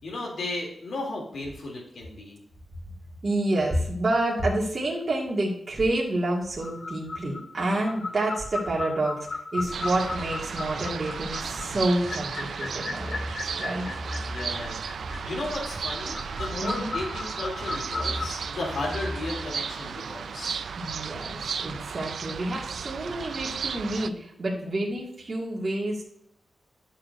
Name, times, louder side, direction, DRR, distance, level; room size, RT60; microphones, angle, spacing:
voice 1, 0.0-2.4 14.2-14.8 15.2-20.6, left 2 dB, 75° left, -2 dB, 3.2 m, -34 dB
voice 2, 3.2-13.9 16.6-16.9 20.8-26.0, right 1 dB, 45° right, -4 dB, 2.2 m, -28 dB
sound 1, 6.6-18.3, left 3 dB, 50° left, 0.8 m, -36 dB
sound 2, 9.6-19.5, equal, ahead, 1.5 m, -39 dB
sound 3, 9.7-24.1, right 6 dB, 80° right, 0.4 m, -35 dB
11.5 x 7.2 x 2.7 m, 0.72 s
wide cardioid pair, 110°, 0 cm